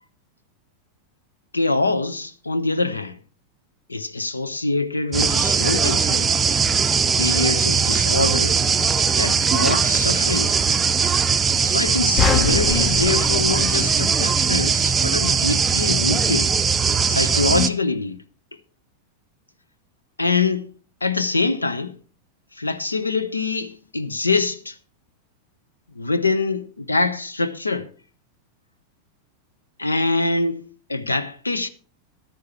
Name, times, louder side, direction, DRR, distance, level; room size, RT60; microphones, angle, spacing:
voice 1, 1.5-3.2 3.9-6.3 7.2-8.6 9.2-10.6 11.6-16.5 17.0-18.2 20.2-20.7 21.0-21.9 22.5-24.8 25.9-27.9 29.8-30.6 30.9-31.7, left 3 dB, 80° left, 0.8 m, -24 dB
sound 1, 5.1-17.7, right 6 dB, 15° right, 0.6 m, -20 dB
sound 2, 12.2-14.6, left 6 dB, 30° left, 0.8 m, -24 dB
12.0 x 9.5 x 4.5 m
figure-of-eight pair, 90°, 0 cm